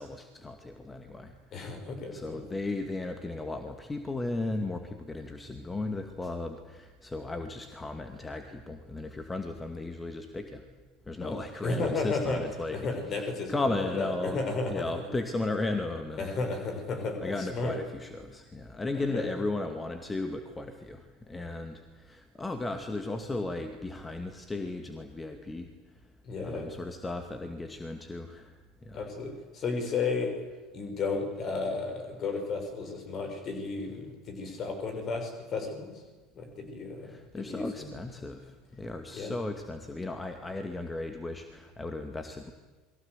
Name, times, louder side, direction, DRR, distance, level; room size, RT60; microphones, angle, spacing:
voice 1, 0.0-1.3 2.1-10.6 11.1-12.9 13.2-14.4 14.7-16.4 17.2-25.7 26.4-28.6 28.9-29.0 37.0-42.5, left 2 dB, 15° left, 7 dB, 2.3 m, -35 dB
voice 2, 1.5-2.4 11.2-12.4 12.7-15.1 16.2-17.8 18.9-19.3 26.2-26.7 28.9-30.3 30.7-36.0 36.3-37.9 39.1-39.3, left 3 dB, 40° left, 6 dB, 6.4 m, -33 dB
29.5 x 22.5 x 8.2 m, 1.3 s
figure-of-eight pair, 70°, 0 cm